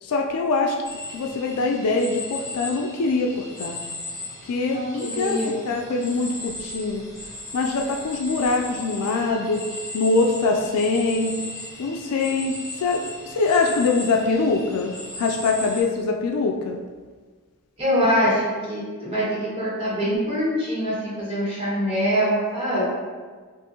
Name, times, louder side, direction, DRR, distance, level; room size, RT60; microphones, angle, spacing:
voice 1, 0.0-0.8 1.1-3.8 4.4-5.4 5.7-7.0 7.5-9.6 9.9-11.3 11.8-16.8, left 3 dB, 85° left, 2 dB, 0.4 m, -23 dB
sound 1, 0.8-15.8, left 2 dB, 15° left, 1.1 m, -37 dB
voice 2, 4.6-5.5 17.8-22.9, equal, 25° right, -8 dB, 1.5 m, -24 dB
6.1 x 2.6 x 2.8 m, 1.5 s
head